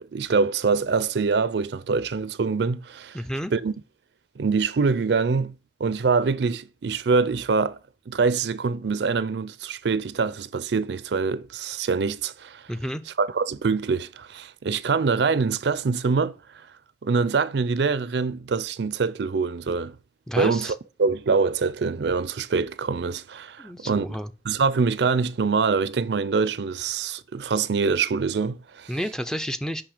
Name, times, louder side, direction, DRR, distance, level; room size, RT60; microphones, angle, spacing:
voice 1, 0.0-3.2 3.5-3.7 4.4-5.5 5.8-7.8 8.1-12.6 13.1-16.4 17.0-20.0 20.4-24.2 24.4-29.0, right 4 dB, 80° right, 0.5 m, -24 dB
voice 2, 3.1-3.5 12.7-13.0 20.3-20.7 23.6-24.3 28.9-29.8, equal, 5° left, 0.4 m, -30 dB
5.9 x 5.4 x 6.6 m
head